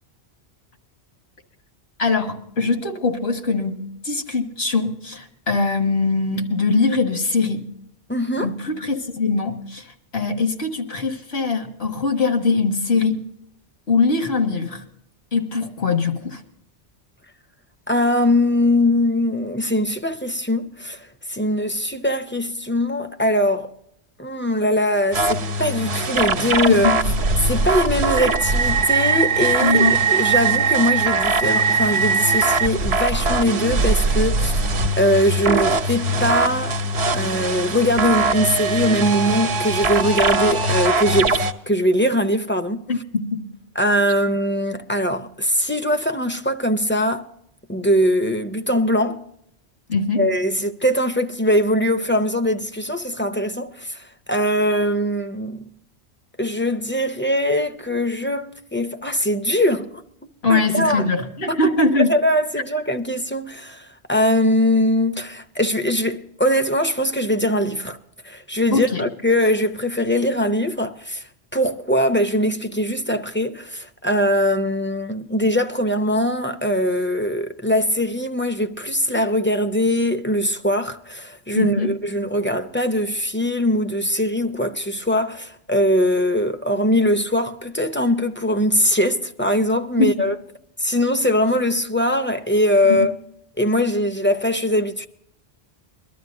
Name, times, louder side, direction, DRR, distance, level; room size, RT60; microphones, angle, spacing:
voice 1, 2.0-7.7 8.4-13.2 13.9-14.8 15.3-16.4 26.7-27.1 29.6-30.0 42.9-43.4 49.9-50.2 60.4-62.1 68.7-69.1 81.5-81.9 90.0-90.3 92.8-93.1, left 3 dB, 75° left, 1.8 m, -22 dB
voice 2, 8.1-8.5 17.9-23.7 24.2-26.9 27.4-36.8 37.1-42.8 43.8-47.3 47.7-49.2 50.2-55.6 56.4-60.0 60.5-61.1 62.0-68.0 68.2-71.2 71.5-90.3 90.8-93.1 93.6-95.1, equal, 15° left, 0.5 m, -21 dB
sound 1, 25.1-41.5, right 3 dB, 75° right, 1.2 m, -21 dB
23.0 x 12.5 x 2.6 m
omnidirectional pair, 1.1 m